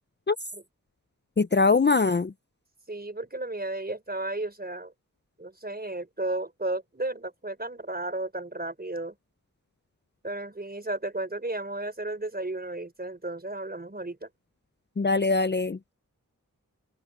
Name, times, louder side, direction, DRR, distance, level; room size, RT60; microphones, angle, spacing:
voice 1, 1.4-2.3 15.0-15.9, left 4 dB, 35° left, 0.6 m, -22 dB
voice 2, 2.9-4.9 5.4-9.2 10.2-14.3, right 2 dB, 30° right, 5.3 m, -33 dB
wide cardioid pair, 75°, 32 cm